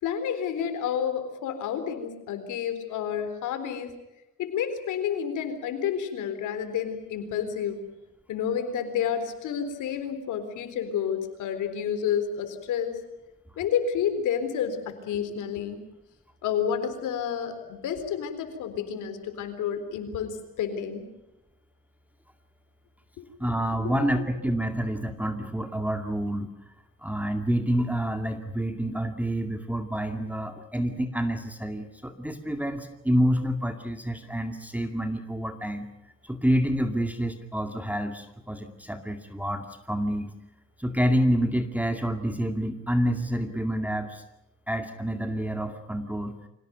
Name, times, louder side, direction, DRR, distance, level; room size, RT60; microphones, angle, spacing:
voice 1, 0.0-3.9 4.4-7.8 8.3-13.0 13.6-15.8 16.4-21.1 23.8-23.9, left 8 dB, 85° left, 8 dB, 4.0 m, -30 dB
voice 2, 23.4-26.5 27.0-35.9 36.2-40.3 40.8-44.2 44.7-46.4, equal, 5° right, 6 dB, 2.2 m, -28 dB
25.5 x 18.0 x 9.4 m, 0.94 s
cardioid pair, 90°, 30 cm